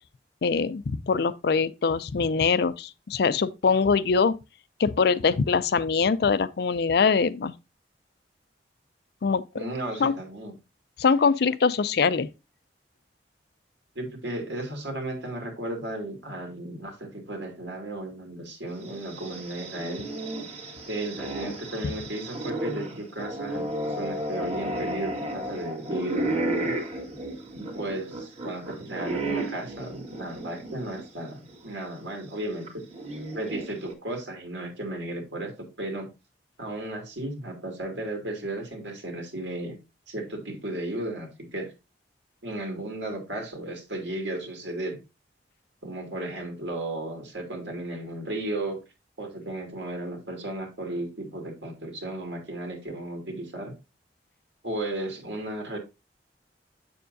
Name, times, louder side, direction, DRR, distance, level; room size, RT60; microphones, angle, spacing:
voice 1, 0.4-4.3 4.8-7.5 9.2-9.4 10.0-10.1 11.0-12.3, left 5 dB, 60° left, 0.4 m, -23 dB
voice 2, 9.5-10.5 13.9-20.0 20.9-26.8 27.5-32.8 33.3-36.1 36.6-39.8 40.1-41.7 42.4-45.0 45.8-48.8 49.2-53.7 54.6-55.8, right 1 dB, 85° right, 2.4 m, -34 dB
sound 1, 18.8-31.1 31.5-31.6 32.7-33.9, right 1 dB, 35° right, 1.7 m, -33 dB
7.3 x 6.9 x 2.6 m
head